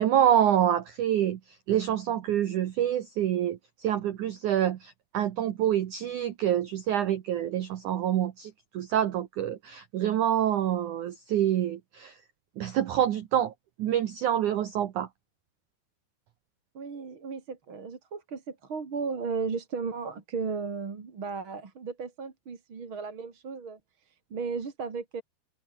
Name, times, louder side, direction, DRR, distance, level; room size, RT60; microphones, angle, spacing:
voice 1, 0.0-1.4 1.7-12.1 12.6-13.5 13.8-15.1, right 10 dB, 90° right, 1.7 m, -26 dB
voice 2, 16.7-23.8 24.1-25.2, right 5 dB, 30° right, 2.9 m, -35 dB
omnidirectional pair, 5.4 m